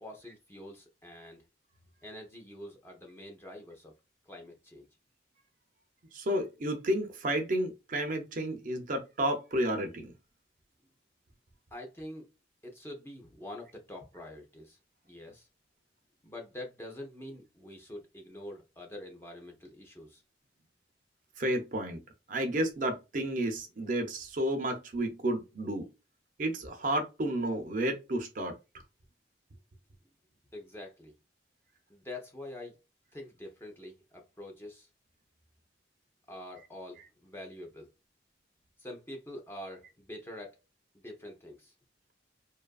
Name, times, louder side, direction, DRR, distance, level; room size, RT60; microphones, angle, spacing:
voice 1, 0.0-1.4 2.0-3.9 4.3-4.9 11.7-12.3 12.6-14.8 15.1-15.5 16.2-20.2 30.5-31.1 31.9-32.8 33.1-34.9 36.3-37.9 38.8-40.6 40.9-41.7, left 1 dB, 15° left, 0.5 m, -45 dB
voice 2, 6.1-10.1 21.4-22.0 22.3-25.9 26.4-28.6, right 1 dB, 45° right, 0.5 m, -31 dB
2.6 x 2.4 x 2.2 m
head